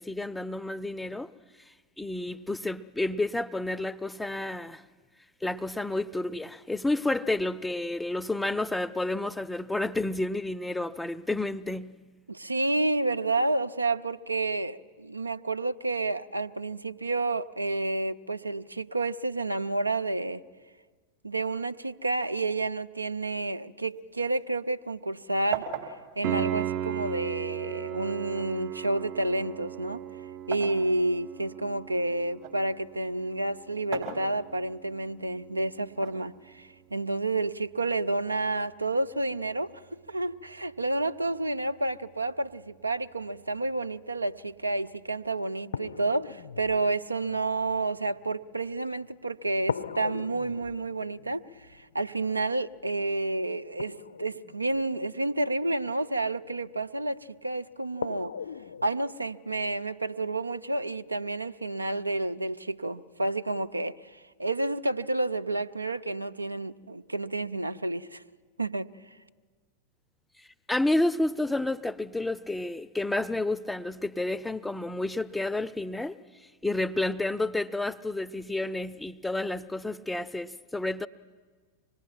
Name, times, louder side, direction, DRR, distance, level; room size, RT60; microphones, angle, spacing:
voice 1, 0.0-1.3 2.0-4.8 5.4-12.0 70.7-76.2 76.6-81.1, left 2 dB, 5° left, 0.5 m, -30 dB
voice 2, 12.3-20.4 21.2-25.7 26.2-30.0 30.5-39.8 40.1-51.4 51.7-58.3 58.8-68.2 68.6-68.9, right 2 dB, 80° right, 0.6 m, -30 dB
sound 1, 23.9-25.2 25.5-27.5 28.3-30.9 31.4-32.6 33.7-34.8 35.9-37.0, right 8 dB, 55° right, 3.7 m, -40 dB
Piano, 26.2-36.9 40.2-40.3, right 11 dB, 40° right, 0.7 m, -37 dB
sound 2, 44.9-45.0 45.7-49.1 49.7-55.8 57.2-57.3 58.0-58.9, left 6 dB, 70° left, 0.5 m, -40 dB
25.0 x 19.5 x 5.8 m
figure-of-eight pair, 90°, 0 cm